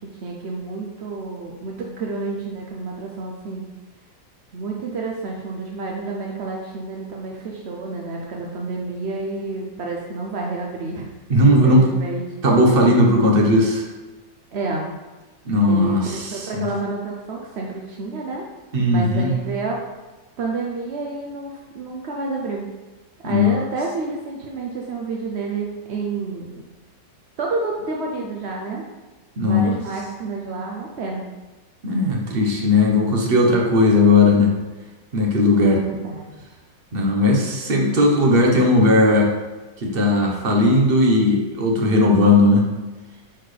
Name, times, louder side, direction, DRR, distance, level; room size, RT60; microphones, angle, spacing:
voice 1, 0.2-3.7 4.5-11.1 11.5-12.2 14.5-14.9 15.7-18.4 18.9-19.8 20.4-22.7 23.2-26.5 27.4-28.9 29.4-31.3 35.6-36.3, right 3 dB, 60° right, -1 dB, 0.7 m, -29 dB
voice 2, 11.3-11.9 12.4-13.9 15.5-16.6 18.7-19.3 23.2-23.5 29.4-29.7 31.8-34.5 35.1-35.8 36.9-39.3 39.8-42.6, left 2 dB, 40° right, 0 dB, 1.0 m, -17 dB
9.9 x 4.2 x 3.3 m, 1.2 s
omnidirectional pair, 1.9 m